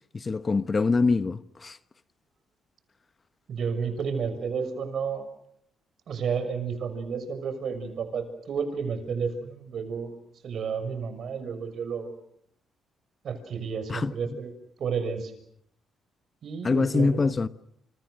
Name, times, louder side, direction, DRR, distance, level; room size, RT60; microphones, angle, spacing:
voice 1, 0.1-1.8 13.9-14.1 16.6-17.5, left 4 dB, 30° left, 1.1 m, -24 dB
voice 2, 3.5-5.3 6.1-10.2 10.4-12.1 13.2-14.5 14.8-15.3 16.4-17.2, right 6 dB, 60° right, 6.2 m, -31 dB
29.5 x 28.5 x 6.5 m
cardioid pair, 90°, 0 cm